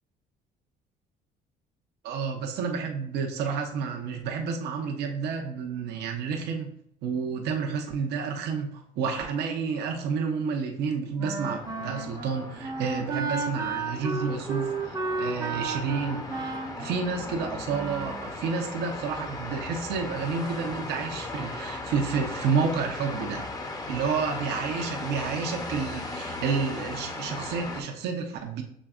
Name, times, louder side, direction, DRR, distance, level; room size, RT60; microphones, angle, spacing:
voice 1, 2.0-6.7 7.0-23.5 23.9-28.6, right 5 dB, 70° right, 3 dB, 0.7 m, -30 dB
Wind instrument woodwind instrument, 11.2-18.3, right 3 dB, 20° right, 0.7 m, -33 dB
sound 1, 11.4-27.8, left 2 dB, 20° left, 0.7 m, -37 dB
6.2 x 3.4 x 2.4 m, 0.71 s
cardioid pair, 95°, 18 cm